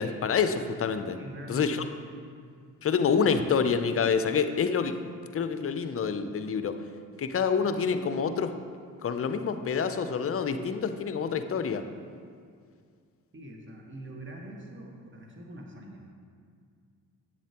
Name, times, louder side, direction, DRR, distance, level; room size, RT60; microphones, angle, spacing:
voice 1, 0.0-1.2 1.5-1.9 2.8-5.0 5.3-6.8 7.2-8.5 9.0-11.9, left 6 dB, 35° left, 9 dB, 0.5 m, -27 dB
voice 2, 1.1-2.1 13.3-16.1, equal, 30° right, 0 dB, 1.4 m, -43 dB
8.2 x 7.2 x 2.9 m, 2.1 s
supercardioid pair, 55°, 39 cm